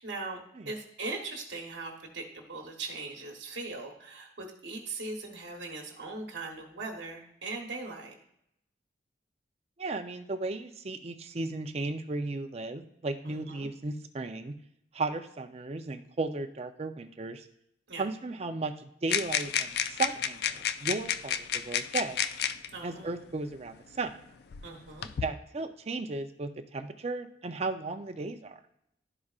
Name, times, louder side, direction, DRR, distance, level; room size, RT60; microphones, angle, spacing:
voice 1, 0.0-8.1 13.2-13.7 17.9-18.1 22.7-23.1 24.6-25.1, right 3 dB, 70° right, 0 dB, 1.1 m, -40 dB
voice 2, 9.8-14.5 14.9-17.5 18.0-22.2 22.8-24.1 25.2-28.6, right 3 dB, 35° right, 7 dB, 0.5 m, -35 dB
sound 1, 19.1-22.7 23.7-23.8 24.5-25.3, left 8 dB, 60° left, 0.3 m, -31 dB
12.0 x 4.8 x 2.4 m, 0.75 s
head